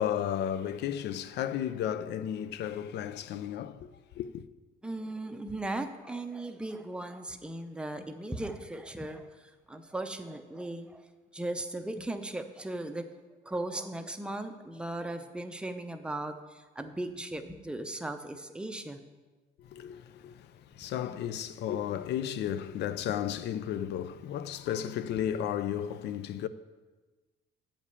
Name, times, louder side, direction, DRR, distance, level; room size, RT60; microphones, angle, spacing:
voice 1, 0.0-3.9 4.1-4.4 19.6-26.5, left 10 dB, 65° left, 0.5 m, -33 dB
voice 2, 4.8-11.0 11.3-13.1 13.4-19.0 23.1-23.2, right 1 dB, 5° right, 0.5 m, -37 dB
8.5 x 5.2 x 6.8 m
cardioid pair, 145°, 19 cm